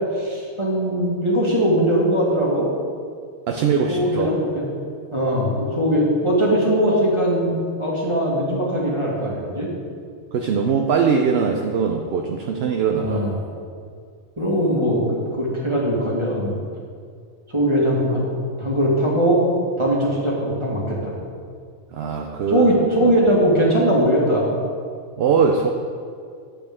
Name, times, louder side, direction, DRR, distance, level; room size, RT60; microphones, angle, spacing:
voice 1, 0.1-2.7 3.5-4.7 5.1-9.7 13.0-13.3 14.4-16.5 17.5-18.3 18.6-19.4 19.8-21.1 22.5-24.5, equal, 20° right, -5 dB, 2.0 m, -20 dB
voice 2, 3.5-4.3 10.3-13.2 21.9-22.7 23.0-23.1 25.2-25.7, right 6 dB, 60° right, 3 dB, 0.7 m, -21 dB
10.0 x 7.8 x 3.6 m, 2.2 s
omnidirectional pair, 1.4 m